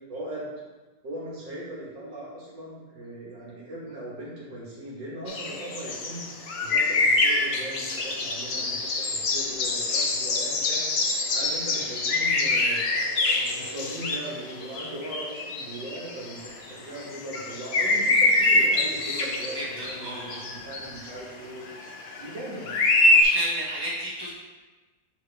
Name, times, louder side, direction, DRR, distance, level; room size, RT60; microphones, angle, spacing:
voice 1, 0.1-0.5 1.0-6.3 6.6-10.8 11.3-12.8 13.4-16.4 16.7-21.7 22.2-22.7, right 1 dB, 75° right, -6 dB, 2.3 m, -39 dB
sound 1, 5.3-16.7 17.0-21.1 21.7-22.4 22.7-23.2, left 2 dB, 70° left, 0.6 m, -25 dB
voice 2, 19.5-20.4 23.0-24.3, equal, 15° left, -8 dB, 1.2 m, -33 dB
6.6 x 4.6 x 3.4 m, 1.2 s
omnidirectional pair, 2.0 m